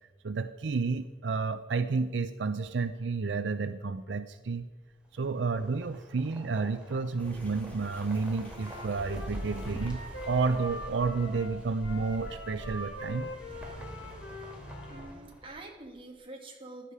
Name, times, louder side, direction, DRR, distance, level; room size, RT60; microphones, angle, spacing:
voice 1, 0.2-4.7 5.1-10.0 10.3-13.3, right 4 dB, 75° right, 11 dB, 0.5 m, -31 dB
sound 1, 5.0-15.9, equal, 5° right, 2.7 m, -49 dB
sound 2, 7.2-13.7, equal, 10° left, 2.8 m, -43 dB
Wind instrument woodwind instrument, 8.5-15.1, left 1 dB, 75° left, 2.1 m, -43 dB
voice 2, 14.9-16.9, right 2 dB, 30° right, 1 dB, 2.1 m, -46 dB
15.5 x 11.0 x 4.8 m, 1.3 s
head